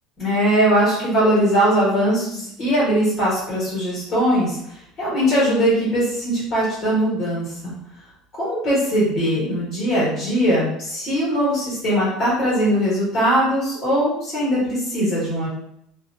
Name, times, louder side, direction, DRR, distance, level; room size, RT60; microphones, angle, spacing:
voice 1, 0.2-7.7 8.4-15.5, equal, 35° left, -9 dB, 1.5 m, -20 dB
2.9 x 2.4 x 2.5 m, 0.76 s
cardioid pair, 145°, 0 cm